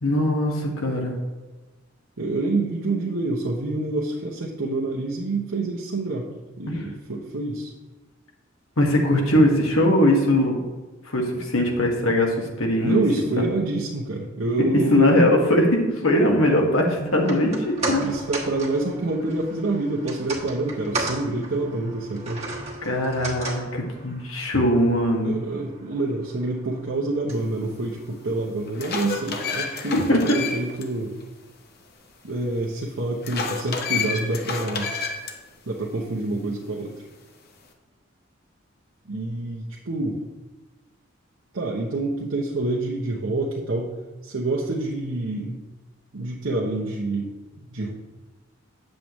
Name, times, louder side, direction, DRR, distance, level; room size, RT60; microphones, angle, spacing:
voice 1, 0.0-1.1 6.7-6.9 8.8-10.6 11.1-13.0 14.9-18.0 22.8-25.4 29.9-30.4, left 1 dB, 85° left, 0 dB, 1.6 m, -20 dB
voice 2, 2.2-6.3 6.6-7.7 12.8-15.4 17.9-22.4 25.2-31.1 32.2-34.9 35.7-36.9 39.1-40.2 41.5-43.9 44.2-45.6 46.1-47.9, right 2 dB, 75° right, -3 dB, 0.9 m, -27 dB
sound 1, 17.1-29.5 29.8-29.9, right 2 dB, 30° right, 1.3 m, -36 dB
sound 2, 27.8-27.9 28.5-30.8 31.2-31.3 33.2-35.3, left 5 dB, 50° left, 0.9 m, -29 dB
8.6 x 7.5 x 3.1 m, 1.2 s
head